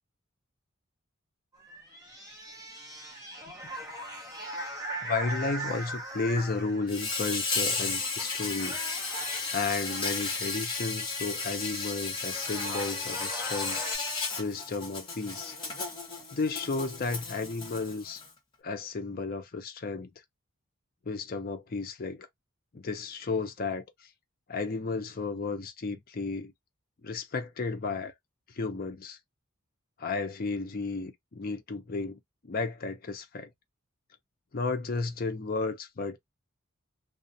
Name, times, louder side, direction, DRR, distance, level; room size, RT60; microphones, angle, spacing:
sound 1, 1.5-7.1 8.0-8.3 8.6-10.4 11.8-11.9 12.2-14.0, right 1 dB, 15° right, 0.7 m, -40 dB
voice 1, 5.0-8.9 9.5-13.8 14.4-15.5 16.3-18.2 18.6-20.1 21.1-22.3 22.7-24.1 24.5-26.5 27.0-28.1 28.5-29.2 30.0-33.5 34.5-36.2, left 3 dB, 45° left, 0.5 m, -33 dB
Insect, 6.9-18.3, left 4 dB, 25° left, 1.0 m, -34 dB
2.3 x 2.0 x 2.6 m
head